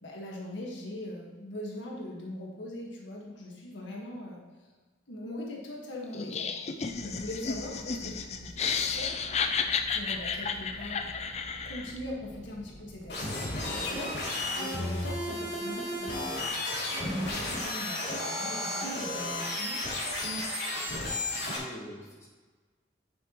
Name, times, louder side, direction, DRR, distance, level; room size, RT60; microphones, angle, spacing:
voice 1, 0.0-4.4 5.1-9.2 9.9-16.5 17.1-19.8, left 1 dB, 80° left, -2 dB, 1.7 m, -41 dB
Laughter, 6.1-12.0, left 5 dB, 35° left, 0.5 m, -32 dB
sound 1, 6.9-14.0, equal, 60° right, 1.6 m, -49 dB
sound 2, 13.1-21.6, left 1 dB, 65° left, 2.9 m, -33 dB
voice 2, 21.4-22.3, equal, 15° left, -4 dB, 2.1 m, -46 dB
9.6 x 7.9 x 3.1 m, 1.4 s
head